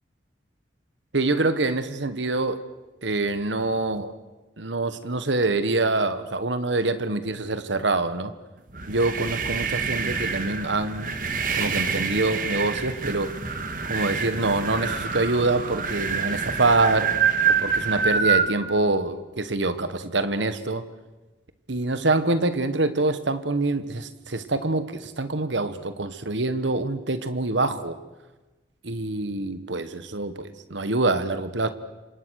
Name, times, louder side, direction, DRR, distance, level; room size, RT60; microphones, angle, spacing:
voice 1, 1.1-2.6 3.0-4.1 4.6-8.3 8.9-11.1 11.5-13.3 13.9-17.1 17.5-20.8 21.7-28.0 28.8-31.7, right 2 dB, 85° right, 11 dB, 1.5 m, -25 dB
sound 1, 8.7-18.5, right 5 dB, 45° right, 1.9 m, -26 dB
29.0 x 25.0 x 6.6 m, 1.2 s
head